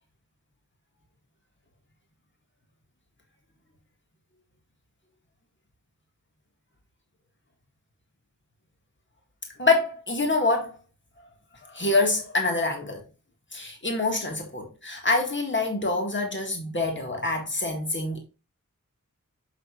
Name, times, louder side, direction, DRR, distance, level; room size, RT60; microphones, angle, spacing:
voice 1, 9.6-10.7 11.7-13.0 13.5-18.2, left 3 dB, 35° left, 1.9 m, -26 dB
7.5 x 6.8 x 2.5 m
wide cardioid pair, 50°, 32 cm